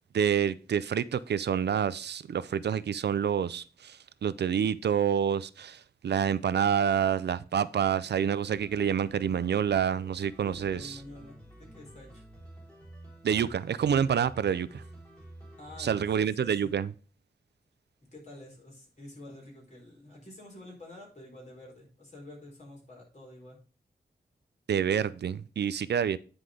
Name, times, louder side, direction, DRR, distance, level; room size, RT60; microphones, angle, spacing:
voice 1, 0.1-11.0 13.2-14.8 15.8-16.9 24.7-26.2, right 8 dB, 85° right, 0.5 m, -28 dB
sound 1, 8.6-16.1, right 1 dB, 5° left, 3.5 m, -50 dB
voice 2, 10.4-12.3 15.6-16.0 16.4-16.7 18.1-23.6, left 1 dB, 45° left, 4.5 m, -48 dB
9.6 x 4.9 x 3.8 m
wide cardioid pair, 115°, 17 cm